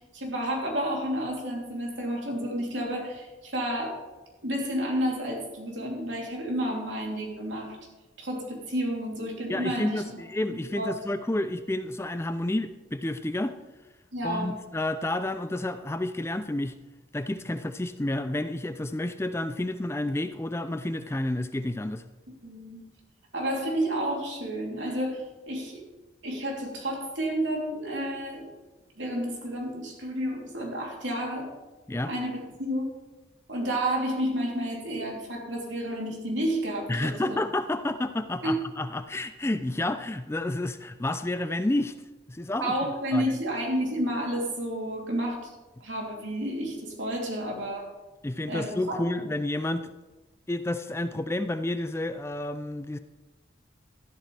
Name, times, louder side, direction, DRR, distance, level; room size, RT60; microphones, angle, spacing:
voice 1, 0.0-4.0 4.4-7.8 8.2-10.2 10.5-10.9 14.1-14.5 22.4-22.8 23.3-25.8 26.2-28.5 29.0-31.5 32.0-32.8 33.5-37.4 38.4-38.6 42.6-45.5 45.8-47.9 48.5-49.1, right 1 dB, 80° right, -1 dB, 3.2 m, -31 dB
voice 2, 9.5-13.6 14.2-16.7 17.1-22.0 31.9-32.1 36.9-41.9 42.3-42.7 43.1-43.3 48.2-49.9 50.5-53.0, left 1 dB, 15° left, 10 dB, 0.4 m, -30 dB
13.0 x 11.5 x 3.4 m, 1.2 s
head